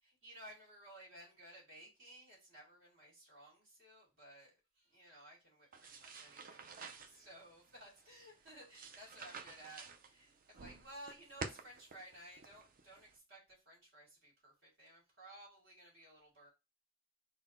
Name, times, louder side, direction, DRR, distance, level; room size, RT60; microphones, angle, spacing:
voice 1, 0.2-16.5, right 1 dB, 60° right, 2.1 m, -57 dB
sound 1, 5.7-13.2, right 4 dB, 40° right, 0.5 m, -51 dB
3.9 x 2.2 x 4.3 m
head